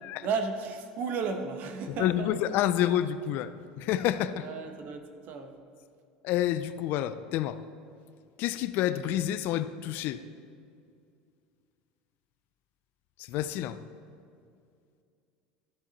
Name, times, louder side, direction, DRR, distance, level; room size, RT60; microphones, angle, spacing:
voice 1, 0.2-2.3 4.4-5.6, right 5 dB, 55° right, 6 dB, 1.1 m, -34 dB
voice 2, 2.0-4.5 6.2-7.6 8.4-10.2 13.2-13.8, left 11 dB, 60° left, 13 dB, 0.4 m, -29 dB
13.0 x 7.4 x 4.1 m, 2.4 s
supercardioid pair, 105°, 4 cm